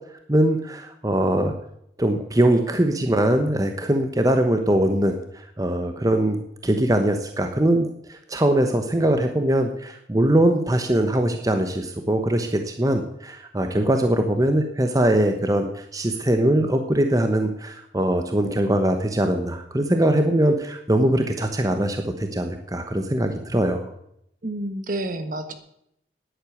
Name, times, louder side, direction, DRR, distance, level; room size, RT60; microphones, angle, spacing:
voice 1, 0.3-1.5 2.0-5.2 5.6-23.9, right 1 dB, 20° right, 6 dB, 0.9 m, -22 dB
voice 2, 24.4-25.5, right 1 dB, 50° right, 9 dB, 1.4 m, -29 dB
10.0 x 9.8 x 9.2 m, 0.76 s
head